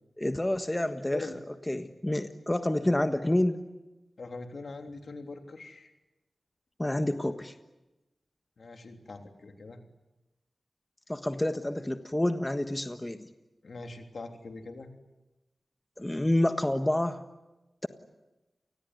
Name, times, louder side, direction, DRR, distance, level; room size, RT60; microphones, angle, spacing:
voice 1, 0.2-1.3 1.7-3.6 6.8-7.5 11.1-13.3 16.0-17.2, left 1 dB, 15° left, 8 dB, 1.5 m, -28 dB
voice 2, 4.2-5.9 8.6-9.8 13.6-14.9, left 3 dB, 70° left, 4 dB, 3.3 m, -42 dB
29.0 x 20.0 x 9.6 m, 1.1 s
wide cardioid pair, 65°, 0 cm